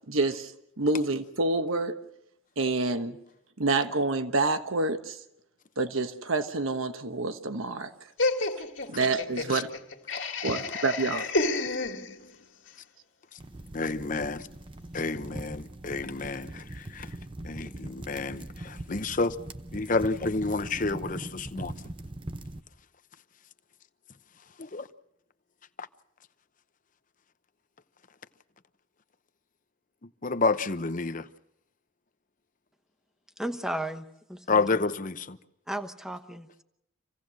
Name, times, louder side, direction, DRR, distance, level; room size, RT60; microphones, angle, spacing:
voice 1, 0.1-0.5 0.8-2.0 2.6-3.2 3.6-5.2 5.8-7.9 8.9-9.7 10.4-11.2, right 3 dB, 85° right, 1.2 m, -27 dB
Laughter, 8.2-12.4, left 3 dB, 65° left, 2.1 m, -30 dB
sound 1, 13.4-22.6, right 1 dB, 25° right, 0.7 m, -41 dB
voice 2, 13.7-14.5 14.9-17.1 17.4-19.4 19.7-21.7 24.6-24.9 30.2-31.3 34.5-35.4, left 3 dB, 40° left, 0.8 m, -29 dB
voice 3, 33.4-34.7 35.7-36.6, right 1 dB, 5° right, 1.0 m, -35 dB
27.0 x 17.0 x 6.4 m
head